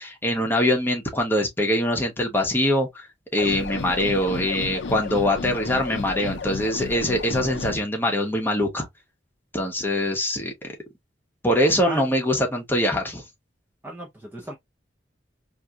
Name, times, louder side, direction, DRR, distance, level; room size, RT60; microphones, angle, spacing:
voice 1, 0.0-3.1 3.3-8.9 9.5-10.5 11.4-13.2, left 1 dB, 10° left, 1.0 m, -23 dB
sound 1, 3.4-7.8, left 4 dB, 85° left, 0.5 m, -32 dB
voice 2, 13.8-14.5, right 1 dB, 10° right, 0.6 m, -35 dB
4.4 x 2.6 x 2.2 m
head